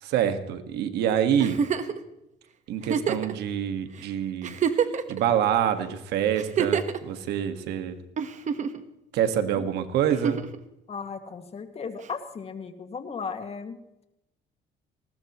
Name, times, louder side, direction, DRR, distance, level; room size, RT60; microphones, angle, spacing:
voice 1, 0.0-1.6 2.7-4.6 5.1-8.0 9.1-10.4, right 9 dB, 80° right, 9 dB, 1.7 m, -26 dB
Giggle, 1.4-2.0 2.8-3.3 4.0-4.1 4.4-5.2 6.4-7.0 8.2-8.8 10.1-10.6 12.0-12.1, right 7 dB, 45° right, 1.4 m, -26 dB
voice 2, 10.9-13.8, left 5 dB, 35° left, 7 dB, 2.2 m, -36 dB
20.0 x 18.0 x 3.1 m, 0.88 s
cardioid pair, 110°, 17 cm